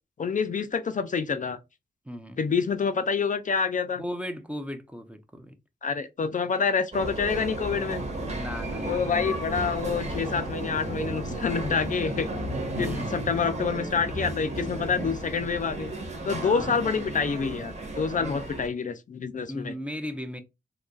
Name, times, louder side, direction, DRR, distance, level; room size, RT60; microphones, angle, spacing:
voice 1, 0.2-1.6 2.4-4.0 5.8-8.0 8.8-12.3 12.8-15.9 16.2-19.7, left 5 dB, 45° left, 0.4 m, -27 dB
voice 2, 2.1-2.4 4.0-5.6 8.3-9.1 12.7-13.3 16.3-16.8 18.2-18.4 19.5-20.4, equal, 5° right, 0.6 m, -37 dB
sound 1, 6.9-18.7, right 1 dB, 40° right, 1.2 m, -33 dB
3.9 x 2.9 x 2.3 m
wide cardioid pair, 130°, 18 cm